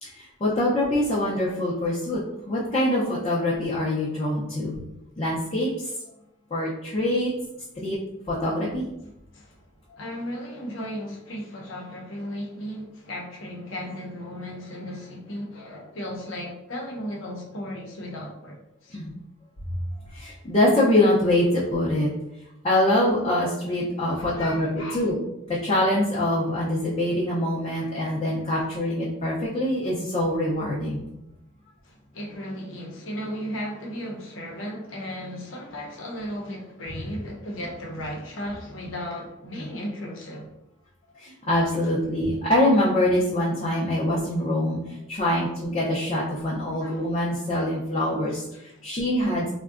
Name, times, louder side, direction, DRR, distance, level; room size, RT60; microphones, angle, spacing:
voice 1, 0.0-4.8 5.2-5.9 6.5-7.3 7.8-8.0 8.3-8.8 18.9-19.1 20.1-22.1 22.6-25.1 25.5-31.0 39.6-39.7 41.2-49.5, left 1 dB, 30° left, -6 dB, 0.5 m, -24 dB
voice 2, 10.0-18.9 24.2-25.1 27.7-27.8 28.5-28.7 31.8-40.5 45.3-45.6 46.6-47.0 48.5-48.9, equal, 75° left, -1 dB, 0.7 m, -36 dB
3.6 x 2.2 x 2.4 m, 0.87 s
head